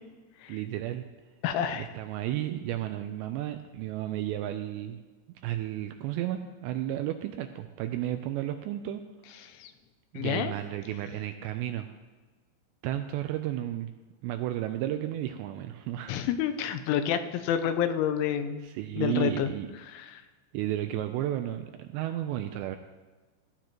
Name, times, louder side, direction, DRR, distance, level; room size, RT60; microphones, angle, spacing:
voice 1, 0.5-1.1 1.6-5.0 5.4-9.0 10.1-11.9 12.8-13.9 14.2-16.1 18.6-19.7 20.5-22.8, right 13 dB, 85° right, 7 dB, 2.5 m, -33 dB
voice 2, 1.4-1.9 9.4-9.7 10.2-10.5 16.1-18.7 19.0-19.5 19.9-20.2, left 9 dB, 90° left, 9 dB, 3.3 m, -29 dB
14.5 x 14.5 x 3.0 m, 1.3 s
omnidirectional pair, 5.5 m